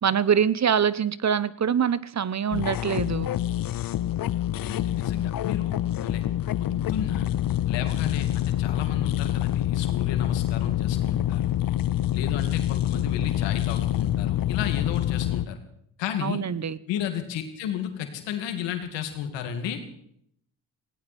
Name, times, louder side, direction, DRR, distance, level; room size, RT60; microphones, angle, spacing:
voice 1, 0.0-3.3 16.2-16.8, right 8 dB, 40° right, 18 dB, 0.9 m, -24 dB
sound 1, 2.5-15.5, left 13 dB, 50° left, 0.7 m, -26 dB
voice 2, 4.5-6.2 6.6-7.3 7.7-11.5 12.1-15.6 16.0-16.4 16.9-19.8, left 8 dB, 85° left, 6 dB, 2.4 m, -33 dB
19.5 x 17.5 x 4.3 m, 0.70 s
supercardioid pair, 60°, 42 cm